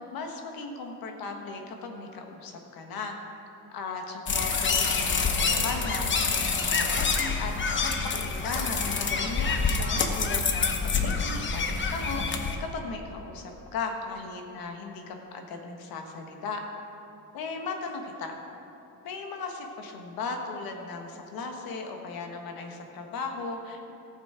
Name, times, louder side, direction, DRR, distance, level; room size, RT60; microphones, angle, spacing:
voice 1, 0.0-3.2 3.7-11.6 11.9-16.6 17.3-18.4 19.0-23.9, left 4 dB, 75° left, 3 dB, 1.5 m, -37 dB
sound 1, 4.3-12.6, left 4 dB, 30° left, 0.9 m, -27 dB
14.5 x 7.4 x 4.9 m, 2.9 s
cardioid pair, 120°, 36 cm